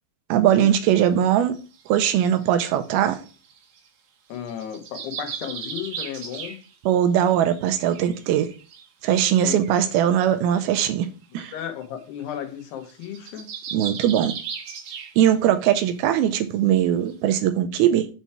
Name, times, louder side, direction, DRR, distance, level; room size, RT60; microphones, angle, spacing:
voice 1, 0.3-1.6 1.9-3.2 6.9-8.5 9.0-11.1 11.3-11.5 13.7-14.3 15.2-18.1, right 10 dB, 80° right, 2.4 m, -20 dB
sound 1, 0.7-0.8 1.5-3.9 4.3-7.0 7.3-8.9 9.3-9.4 9.6-9.9 10.9-11.0 11.2-11.3 11.6-11.8 12.2-12.3 12.6-15.5 15.8-16.0 16.4-16.5 17.1-17.2, right 7 dB, 65° right, 2.3 m, -37 dB
voice 2, 4.3-6.6 9.4-9.6 11.5-13.5, left 9 dB, 85° left, 3.2 m, -34 dB
7.0 x 4.3 x 4.6 m
omnidirectional pair, 4.6 m